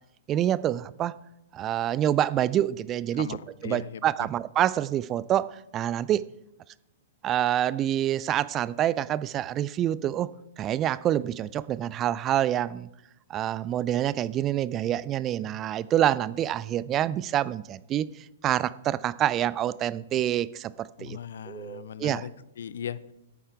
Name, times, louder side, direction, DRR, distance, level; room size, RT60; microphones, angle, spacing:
voice 1, 0.3-1.1 1.5-3.3 3.6-6.2 7.2-10.3 10.6-12.9 13.3-18.1 18.4-21.2 21.5-22.2, right 11 dB, 25° right, 18 dB, 0.4 m, -27 dB
voice 2, 3.1-4.3 21.0-23.1, left 8 dB, 60° left, 18 dB, 0.5 m, -38 dB
11.0 x 9.0 x 4.6 m, 0.85 s
figure-of-eight pair, 110°, 0 cm